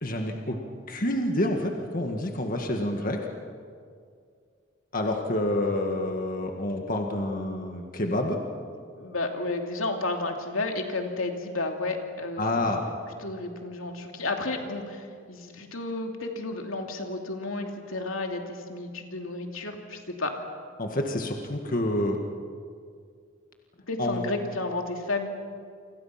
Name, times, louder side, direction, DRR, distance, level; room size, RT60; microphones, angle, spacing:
voice 1, 0.0-0.6 0.9-3.2 4.9-8.4 12.4-12.8 20.8-22.2 24.0-24.2, left 1 dB, 40° left, 2 dB, 1.8 m, -28 dB
voice 2, 9.0-12.7 13.2-20.4 23.9-25.3, left 2 dB, 80° left, 3 dB, 2.7 m, -32 dB
29.0 x 26.0 x 5.9 m, 2.2 s
head